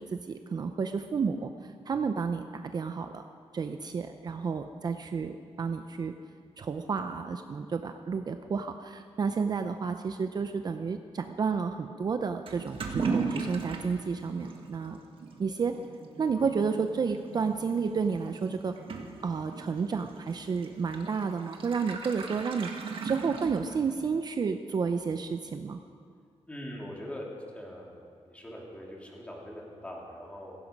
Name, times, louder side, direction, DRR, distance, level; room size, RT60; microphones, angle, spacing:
voice 1, 0.0-3.3 3.5-6.1 6.6-15.0 15.4-15.7 16.2-18.7 19.2-22.7 23.0-25.8, right 5 dB, 40° right, 7 dB, 0.6 m, -31 dB
Toilet flush / Liquid, 12.5-24.1, right 4 dB, 55° right, 1.6 m, -38 dB
voice 2, 26.5-27.2 27.5-30.5, equal, 10° left, -3 dB, 3.0 m, -42 dB
16.0 x 16.0 x 5.3 m, 2.2 s
wide cardioid pair, 140°, 11 cm